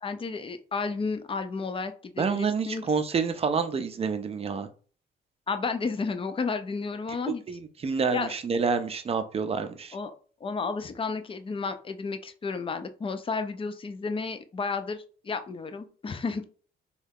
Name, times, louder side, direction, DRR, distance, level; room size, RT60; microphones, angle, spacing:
voice 1, 0.0-2.8 5.5-7.4 8.1-8.3 9.9-10.1 10.4-16.4, left 4 dB, 25° left, 9 dB, 0.4 m, -32 dB
voice 2, 2.2-4.7 7.5-10.0, right 5 dB, 30° right, 7 dB, 0.5 m, -28 dB
2.7 x 2.3 x 3.5 m, 0.41 s
cardioid pair, 90°, 20 cm